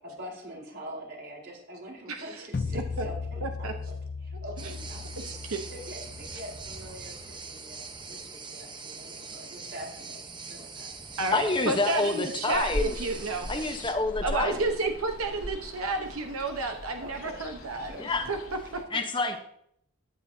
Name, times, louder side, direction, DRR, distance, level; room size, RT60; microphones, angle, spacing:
voice 1, 0.0-3.9 4.2-10.2 10.5-11.1 11.5-11.8 12.2-12.3 14.4-14.7 16.6-18.1 18.7-18.9 19.2-19.4, equal, 50° right, -2 dB, 4.3 m, -45 dB
sound 1, 2.5-7.6, left 4 dB, 45° left, 0.4 m, -37 dB
voice 2, 2.7-3.0 3.4-3.7 5.3-5.6 11.2-13.5 14.2-17.9 18.3-18.4, right 3 dB, 85° right, 5 dB, 1.0 m, -31 dB
sound 2, 4.6-13.9, right 4 dB, 20° right, 0.9 m, -42 dB
voice 3, 11.3-12.9 13.5-14.6 18.0-18.3 18.9-19.4, left 3 dB, 25° left, 5 dB, 1.0 m, -28 dB
Ocean, 12.5-18.8, left 1 dB, 85° left, 2.2 m, -39 dB
14.5 x 10.0 x 2.8 m, 0.70 s
head